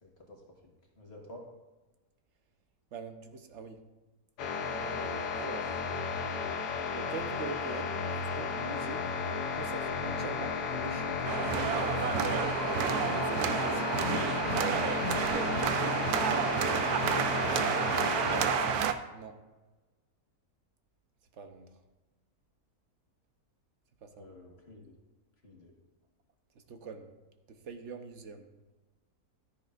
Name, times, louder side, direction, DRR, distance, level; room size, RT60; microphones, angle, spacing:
voice 1, 0.0-0.4 0.9-1.4 17.1-18.6 24.2-25.0 25.4-25.7, left 1 dB, 45° left, -1 dB, 1.7 m, -48 dB
voice 2, 2.9-3.8 4.6-5.8 6.9-9.1 9.5-11.3 13.5-14.4 14.8-15.0 17.6-17.8 19.1-19.4 21.3-21.8 24.0-24.3 26.5-27.1 27.5-28.5, right 5 dB, 55° right, 6 dB, 1.1 m, -44 dB
sound 1, 4.4-18.9, left 5 dB, 90° left, 1.4 m, -33 dB
sound 2, 11.2-18.9, right 9 dB, 80° right, 1.1 m, -30 dB
13.0 x 9.9 x 2.5 m, 1.1 s
omnidirectional pair, 1.6 m